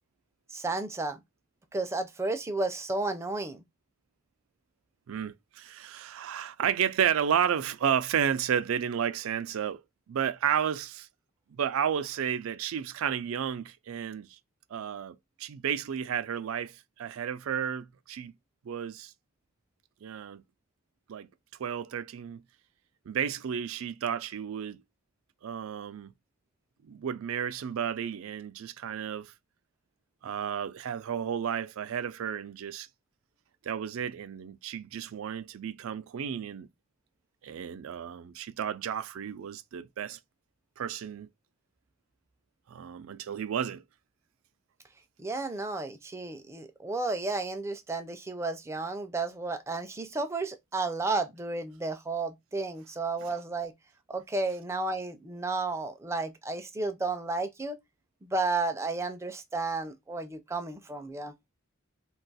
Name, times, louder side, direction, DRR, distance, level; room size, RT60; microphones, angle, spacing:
voice 1, 0.5-1.2 1.7-3.6 45.2-53.7 54.1-57.8 58.2-61.3, right 3 dB, 15° right, 0.4 m, -32 dB
voice 2, 5.1-9.8 10.1-11.1 11.5-14.4 14.7-18.3 18.6-19.1 20.0-20.4 21.1-21.3 21.6-22.4 23.1-24.8 25.4-26.1 26.8-29.3 30.2-32.9 33.6-36.7 37.4-40.2 40.8-41.3 42.7-43.8, right 8 dB, 85° right, 0.4 m, -32 dB
2.4 x 2.3 x 3.9 m
head